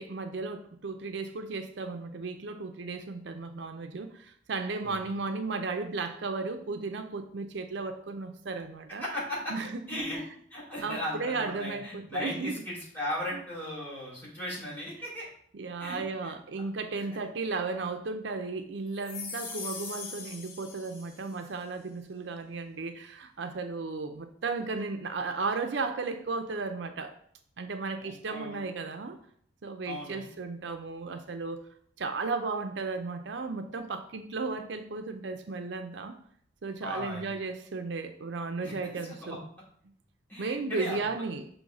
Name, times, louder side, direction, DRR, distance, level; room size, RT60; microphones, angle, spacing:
voice 1, 0.0-9.0 9.5-10.0 10.8-12.6 13.3-13.4 15.5-27.1 27.6-29.2 29.6-31.6 32.0-36.2 36.6-39.4 40.4-41.5, right 4 dB, 70° right, 7 dB, 0.5 m, -35 dB
voice 2, 9.0-9.5 9.9-10.2 10.5-15.3 15.8-16.3 17.0-17.1 28.0-28.6 29.8-30.2 36.8-37.3 38.6-38.7 39.2-39.4 40.3-41.0, left 1 dB, 10° left, -6 dB, 2.8 m, -37 dB
sound 1, 18.9-21.5, left 5 dB, 50° left, 0.8 m, -41 dB
6.2 x 3.1 x 5.2 m, 0.64 s
head